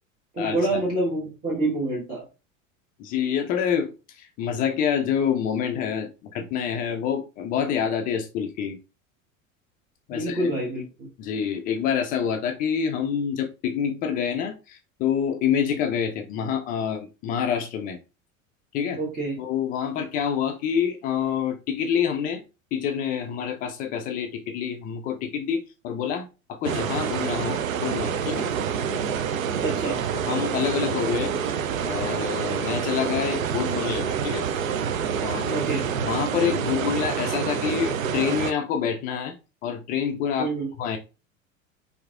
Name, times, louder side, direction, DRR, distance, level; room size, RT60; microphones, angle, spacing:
voice 1, 0.3-2.2 10.1-11.1 19.0-19.4 29.6-30.0 35.5-35.9 40.4-40.7, right 2 dB, 20° right, 1.2 m, -27 dB
voice 2, 3.0-3.9 4.2-6.1 6.3-8.8 10.1-10.5 11.2-18.0 18.7-19.0 19.4-22.4 22.7-28.5 30.1-31.3 31.8-34.5 35.2-35.6 36.0-39.4 39.6-40.5 40.8-41.0, left 8 dB, 25° left, 0.3 m, -27 dB
sound 1, 26.6-38.5, right 7 dB, 75° right, 0.5 m, -27 dB
4.5 x 2.7 x 2.4 m
figure-of-eight pair, 80°, 41 cm